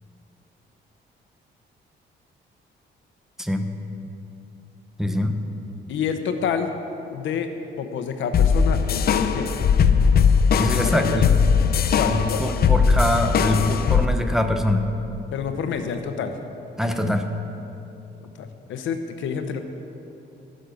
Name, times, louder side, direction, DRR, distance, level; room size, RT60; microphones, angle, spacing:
voice 1, 3.4-3.7 5.0-5.4 10.6-11.3 12.1-14.9 16.8-17.3, left 1 dB, ahead, 5 dB, 0.9 m, -23 dB
voice 2, 5.9-6.7 7.1-7.5 7.8-9.5 10.7-11.3 11.9-12.4 15.3-16.4 18.2-19.6, left 7 dB, 90° left, 7 dB, 1.0 m, -28 dB
sound 1, 8.3-14.1, left 6 dB, 55° left, 0.6 m, -19 dB
14.0 x 6.6 x 7.0 m, 2.8 s
cardioid pair, 120°, 19 cm